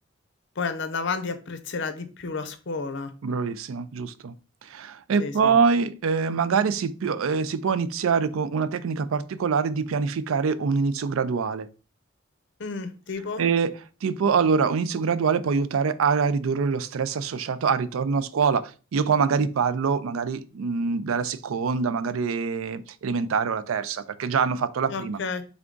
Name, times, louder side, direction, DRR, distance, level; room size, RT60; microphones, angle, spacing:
voice 1, 0.6-3.1 5.2-5.6 12.6-13.4 24.9-25.4, left 4 dB, 60° left, 0.6 m, -31 dB
voice 2, 3.2-4.3 4.6-11.7 13.4-13.7 14.0-25.2, right 5 dB, 85° right, 0.4 m, -25 dB
3.6 x 3.5 x 3.8 m
head